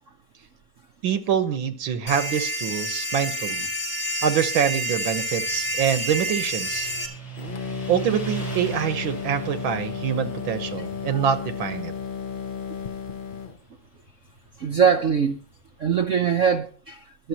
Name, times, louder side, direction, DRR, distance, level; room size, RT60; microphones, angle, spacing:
voice 1, 1.0-3.7 4.2-6.9 7.9-11.9, right 8 dB, 90° right, 1.9 m, -25 dB
sound 1, 2.1-7.1, equal, 30° left, 2.1 m, -29 dB
Motorcycle, 4.9-16.1, right 5 dB, 70° left, 6.6 m, -40 dB
sound 2, 7.4-13.6, left 7 dB, 55° left, 0.5 m, -33 dB
voice 2, 14.6-15.4 15.8-17.3, right 7 dB, 55° right, 0.8 m, -22 dB
22.5 x 7.5 x 2.9 m
omnidirectional pair, 2.1 m